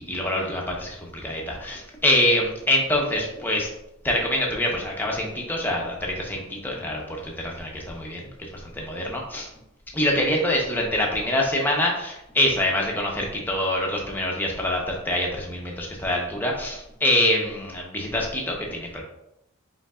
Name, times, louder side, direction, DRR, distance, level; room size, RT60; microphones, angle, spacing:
voice 1, 0.0-3.7 4.0-8.3 8.6-9.5 9.9-19.0, left 1 dB, 10° left, -1 dB, 0.8 m, -25 dB
5.2 x 3.9 x 2.4 m, 0.82 s
head